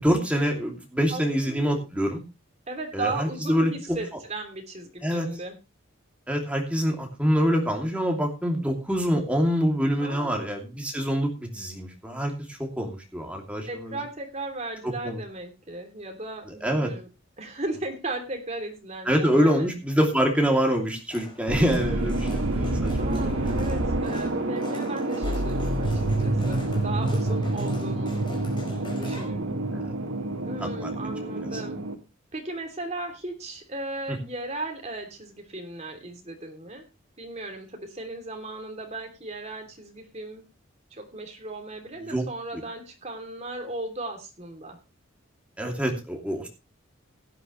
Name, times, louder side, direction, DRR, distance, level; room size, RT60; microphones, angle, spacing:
voice 1, 0.0-2.2 2.9-3.7 5.0-5.3 6.3-13.7 15.0-15.2 16.6-16.9 19.1-23.3 29.7-29.9 30.6-30.9 42.1-42.2 45.6-46.5, equal, 5° right, 1 dB, 2.7 m, -25 dB
voice 2, 1.1-1.8 2.7-5.6 10.0-10.5 13.7-17.1 17.4-19.7 23.0-28.3 28.8-29.6 30.4-31.8 32.3-36.9 37.2-40.5 40.9-44.8, right 2 dB, 30° right, 3 dB, 3.0 m, -36 dB
sound 1, 21.1-29.3, left 1 dB, 25° left, 4.7 m, -43 dB
sound 2, 21.5-31.9, right 2 dB, 90° right, 1.6 m, -27 dB
16.5 x 10.0 x 3.2 m, 0.26 s
head